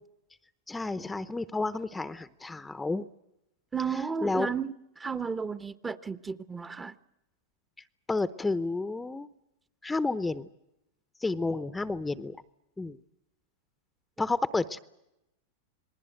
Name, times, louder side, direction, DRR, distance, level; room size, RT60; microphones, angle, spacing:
voice 1, 0.7-3.1 4.2-4.5 8.1-9.3 9.8-10.5 11.2-12.4 12.8-13.0 14.2-14.8, left 3 dB, 10° left, 0.8 m, -30 dB
voice 2, 3.7-7.0, right 6 dB, 15° right, 1.0 m, -33 dB
27.5 x 20.0 x 7.9 m
hypercardioid pair, 105°, 0 cm